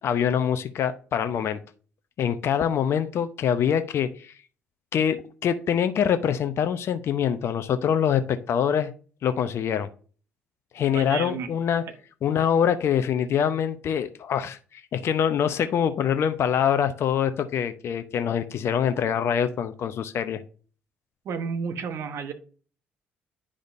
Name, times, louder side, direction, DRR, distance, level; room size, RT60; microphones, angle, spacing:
voice 1, 0.0-1.6 2.2-4.3 4.9-8.9 9.2-9.9 10.7-11.8 12.2-20.4, left 8 dB, 55° left, 0.6 m, -24 dB
voice 2, 10.9-11.5 21.2-22.3, right 6 dB, 55° right, 1.1 m, -31 dB
9.8 x 5.0 x 2.6 m
hypercardioid pair, 50°, 5 cm